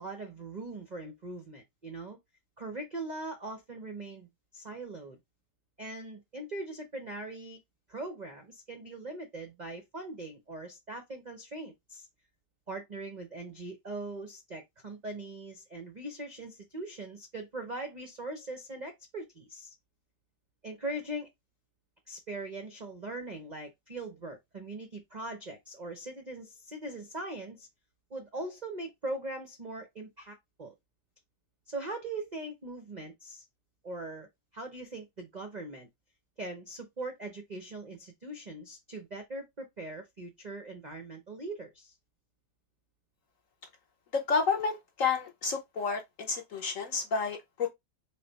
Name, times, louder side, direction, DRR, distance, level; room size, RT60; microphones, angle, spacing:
voice 1, 0.0-2.2 2.6-5.2 5.8-7.6 7.9-12.1 12.7-19.7 20.6-21.3 22.1-27.7 28.1-30.7 31.7-33.4 33.8-34.3 34.5-35.9 36.4-41.9, right 2 dB, 55° right, 0.4 m, -41 dB
voice 2, 44.1-47.7, left 5 dB, 60° left, 0.9 m, -30 dB
4.0 x 3.3 x 4.0 m
omnidirectional pair, 2.0 m